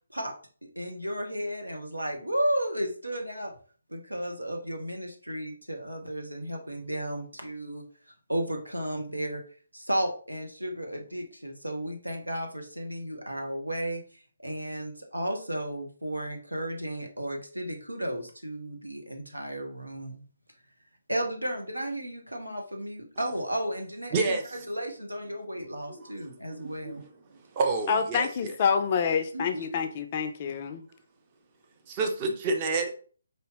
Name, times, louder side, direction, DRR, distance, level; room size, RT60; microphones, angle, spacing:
voice 1, 0.6-3.5 3.9-7.8 8.3-9.4 9.7-14.0 14.4-20.2 21.1-27.0 29.3-29.8, right 1 dB, 85° right, 3 dB, 1.1 m, -33 dB
voice 2, 24.1-24.4 26.0-26.1 26.5-26.9 27.6-28.5 31.9-32.9, right 3 dB, 25° right, 4 dB, 0.6 m, -28 dB
voice 3, 27.9-30.8, left 6 dB, 30° left, 7 dB, 0.5 m, -27 dB
4.9 x 2.9 x 3.0 m, 0.42 s
figure-of-eight pair, 145°, 0 cm